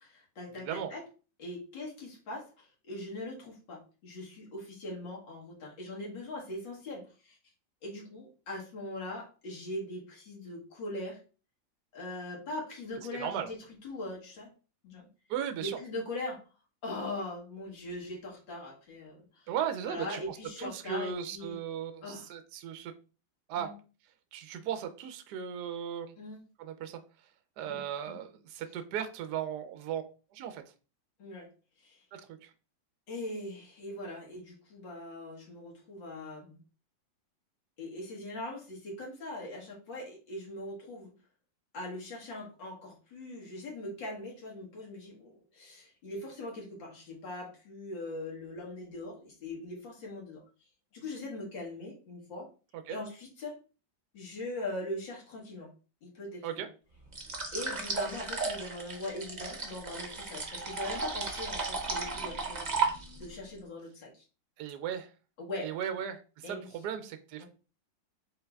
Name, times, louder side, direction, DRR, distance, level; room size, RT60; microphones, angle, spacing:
voice 1, 0.0-1.0 1.4-7.4 7.8-11.2 11.9-13.6 13.8-14.5 14.8-15.1 15.6-16.4 16.8-19.5 19.9-21.6 22.0-22.3 23.6-23.7 26.2-26.4 27.6-28.2 31.2-31.5 31.8-32.0 33.1-36.6 37.8-41.1 41.7-50.4 50.9-52.5 52.9-53.6 54.1-55.7 56.0-56.5 57.5-62.7 63.2-64.1 65.4-65.7 66.4-66.7 67.4-67.5, left 1 dB, 80° left, -2 dB, 2.2 m, -41 dB
voice 2, 0.5-0.9 13.1-13.5 15.3-15.8 19.5-22.9 23.5-23.7 24.3-26.1 26.6-27.0 27.6-30.0 30.3-30.6 32.1-32.5 52.9-53.0 56.4-56.7 64.6-65.1 65.6-67.4, right 9 dB, 70° right, 8 dB, 1.0 m, -37 dB
sound 1, 57.1-63.3, right 4 dB, 40° right, 0.6 m, -34 dB
5.4 x 3.9 x 2.3 m, 0.34 s
omnidirectional pair, 2.0 m